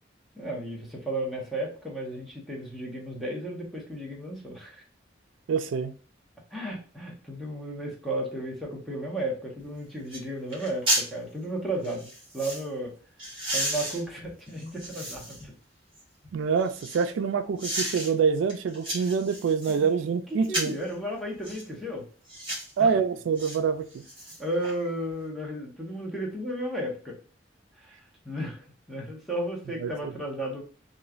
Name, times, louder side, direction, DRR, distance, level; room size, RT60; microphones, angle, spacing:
voice 1, 0.4-4.8 6.5-12.1 12.3-12.9 13.5-15.5 19.7-20.0 20.5-22.0 22.8-22.9 24.4-27.2 27.8-30.6, right 1 dB, ahead, -3 dB, 0.8 m, -34 dB
voice 2, 5.5-5.9 16.3-20.7 22.8-24.0 29.8-30.1, right 6 dB, 85° right, 9 dB, 0.3 m, -26 dB
sound 1, 9.6-9.7 10.1-10.2 10.5-11.1 11.8-12.6 13.2-15.5 16.0-17.1 17.6-18.1 18.5-19.8 20.4-20.8 21.4-21.7 22.3-22.7 23.4-23.6 23.9-24.7 25.1-25.2, right 1 dB, 25° right, 1.4 m, -33 dB
3.0 x 2.3 x 2.3 m, 0.39 s
head